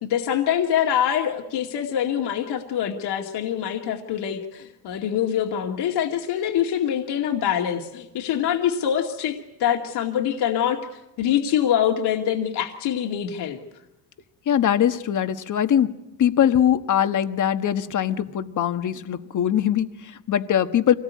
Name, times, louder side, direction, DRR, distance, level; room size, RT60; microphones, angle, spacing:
voice 1, 0.0-10.8 11.2-13.6, left 9 dB, 70° left, 2 dB, 2.3 m, -24 dB
voice 2, 14.5-15.9 16.2-20.9, left 10 dB, 45° left, 9 dB, 1.5 m, -22 dB
25.5 x 18.5 x 9.5 m, 0.92 s
cardioid pair, 95°, 41 cm